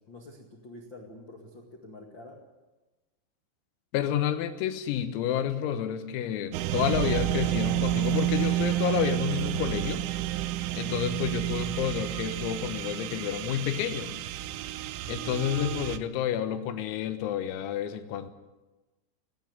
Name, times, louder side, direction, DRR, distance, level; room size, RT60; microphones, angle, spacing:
voice 1, 0.1-2.4 15.0-15.2, left 2 dB, 65° left, 1 dB, 1.1 m, -47 dB
voice 2, 3.9-10.1 10.8-14.1 15.1-18.3, left 10 dB, 85° left, 9 dB, 4.1 m, -30 dB
sound 1, 6.5-16.0, right 14 dB, 80° right, 3.2 m, -30 dB
18.0 x 17.5 x 9.6 m, 1.1 s
omnidirectional pair, 6.0 m